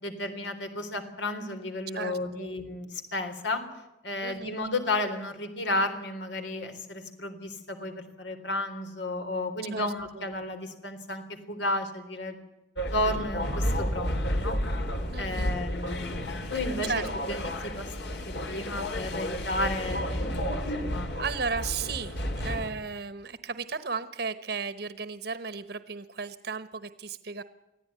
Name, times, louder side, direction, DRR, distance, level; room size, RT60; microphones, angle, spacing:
voice 1, 0.0-3.6 4.0-12.4 12.9-14.6 15.2-16.9 17.3-21.1 22.3-22.4, left 2 dB, 85° left, 6 dB, 3.7 m, -33 dB
voice 2, 1.9-2.5 4.2-4.6 9.7-10.3 15.1-15.5 16.8-17.4 21.2-27.4, right 5 dB, 60° right, 12 dB, 1.1 m, -35 dB
sound 1, 12.8-22.7, equal, 70° left, 3.3 m, -31 dB
24.5 x 15.0 x 9.6 m, 0.95 s
head